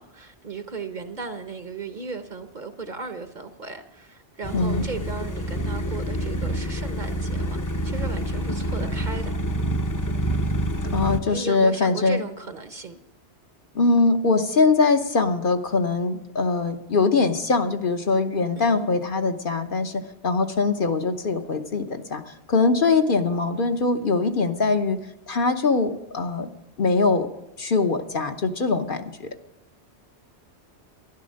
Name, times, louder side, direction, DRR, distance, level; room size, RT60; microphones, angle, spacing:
voice 1, 0.0-9.4 11.3-13.0 18.6-18.9, right 4 dB, 45° right, 0.9 m, -36 dB
sound 1, 4.4-11.2, right 1 dB, 20° left, 0.7 m, -27 dB
voice 2, 4.5-4.9 10.9-12.2 13.7-25.0 25.3-26.5 26.8-27.3 27.6-29.0, left 4 dB, 50° left, 1.0 m, -22 dB
12.5 x 11.0 x 6.4 m
omnidirectional pair, 1.2 m